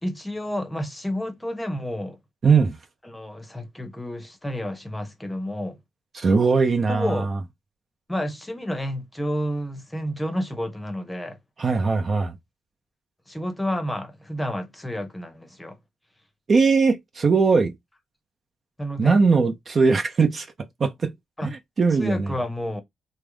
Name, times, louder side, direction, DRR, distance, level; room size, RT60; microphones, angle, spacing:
voice 1, 0.0-2.2 3.0-5.8 6.9-7.3 8.1-11.4 13.3-15.8 18.8-19.2 21.4-21.5 21.9-22.8, equal, 10° left, 0.9 m, -30 dB
voice 2, 2.4-2.8 6.1-7.4 11.6-12.4 16.5-17.7 19.0-20.5 20.8-21.1 21.4-21.5 21.8-22.3, right 4 dB, 45° right, 0.8 m, -20 dB
3.4 x 2.1 x 3.4 m
cardioid pair, 75°, 0 cm